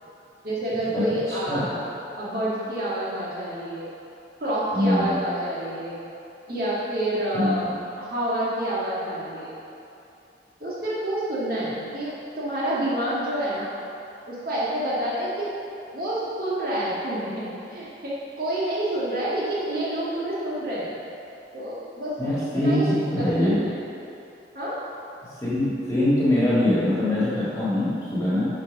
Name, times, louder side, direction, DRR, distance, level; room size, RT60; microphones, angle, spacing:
voice 1, 0.4-1.8 2.2-3.9 4.4-6.0 6.5-7.7 8.0-9.5 10.6-13.7 14.3-15.5 15.9-20.9 21.5-22.9 23.2-23.5 24.5-24.7, right 1 dB, 55° right, -8 dB, 1.9 m, -28 dB
voice 2, 1.3-1.7 4.7-5.2 7.3-7.5 22.2-23.6 25.4-28.4, left 1 dB, 15° left, -10 dB, 1.7 m, -23 dB
9.4 x 4.5 x 6.1 m, 2.7 s
head